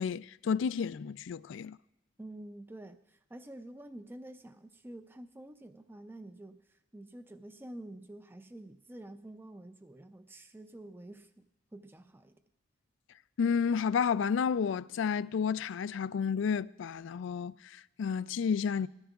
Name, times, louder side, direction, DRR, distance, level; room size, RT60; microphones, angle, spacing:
voice 1, 0.0-1.8 13.4-18.9, left 6 dB, 65° left, 0.3 m, -31 dB
voice 2, 2.2-12.4, right 1 dB, 10° right, 0.4 m, -48 dB
21.0 x 14.0 x 2.4 m
head